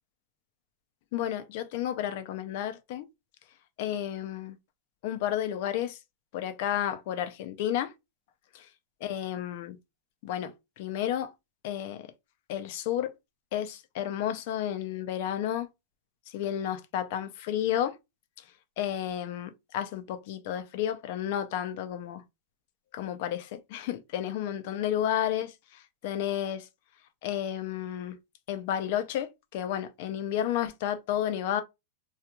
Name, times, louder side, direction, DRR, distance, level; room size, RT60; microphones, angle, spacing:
voice 1, 1.1-3.1 3.8-4.6 5.0-6.0 6.3-7.9 8.5-8.7 9.0-9.8 10.2-11.3 11.6-12.1 12.5-13.1 13.5-15.7 16.3-18.0 18.8-22.2 22.9-26.7 27.2-28.2 28.5-31.6, left 10 dB, 55° left, 0.4 m, -32 dB
2.3 x 2.3 x 2.9 m
supercardioid pair, 150°, 0 cm